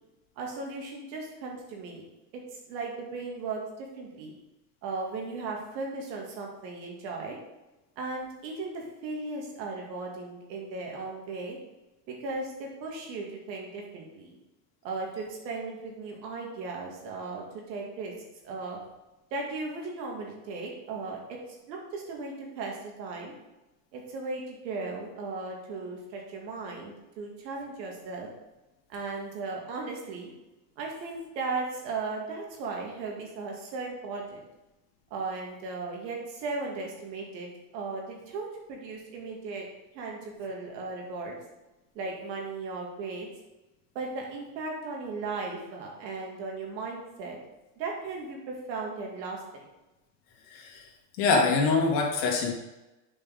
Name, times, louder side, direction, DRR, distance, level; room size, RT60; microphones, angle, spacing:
voice 1, 0.4-2.1 2.3-2.4 2.7-4.4 4.8-7.4 8.0-11.6 12.1-14.4 14.8-18.1 18.4-18.8 19.3-21.4 21.7-23.3 23.9-28.3 28.9-30.3 30.8-34.4 35.1-39.7 39.9-41.4 41.9-43.3 43.9-47.4 47.8-49.6, right 3 dB, 85° right, 0 dB, 2.3 m, -36 dB
voice 2, 51.2-52.5, left 4 dB, 65° left, 0 dB, 2.3 m, -24 dB
8.0 x 5.4 x 3.9 m, 1.0 s
supercardioid pair, 110°, 50 cm